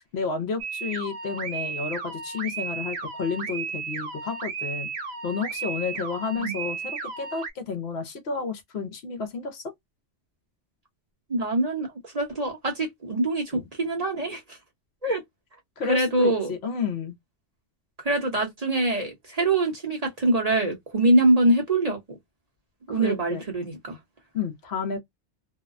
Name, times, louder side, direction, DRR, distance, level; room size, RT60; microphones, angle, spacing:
voice 1, 0.0-4.9 5.2-9.7 13.5-13.6 15.8-17.2 22.9-23.4 24.3-25.0, left 5 dB, 65° left, 0.9 m, -31 dB
sound 1, 0.6-7.5, right 5 dB, 65° right, 1.0 m, -34 dB
voice 2, 11.3-14.6 15.0-15.2 15.9-16.5 18.0-22.2 22.9-24.0, right 2 dB, 35° right, 0.9 m, -24 dB
2.7 x 2.1 x 2.4 m
omnidirectional pair, 1.2 m